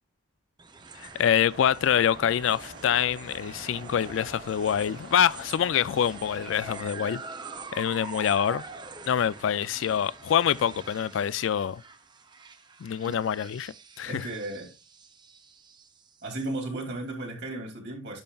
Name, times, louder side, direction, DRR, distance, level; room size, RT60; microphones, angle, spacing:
sound 1, 0.6-17.1, right 4 dB, 20° right, 0.6 m, -45 dB
voice 1, 1.0-7.2 7.7-8.6 9.1-11.8 12.8-14.3, left 9 dB, 70° left, 0.3 m, -25 dB
sound 2, 1.5-6.8, right 2 dB, 85° right, 2.7 m, -46 dB
voice 2, 14.0-14.7 16.2-18.2, right 2 dB, 55° right, 2.6 m, -35 dB
10.5 x 5.7 x 2.3 m
head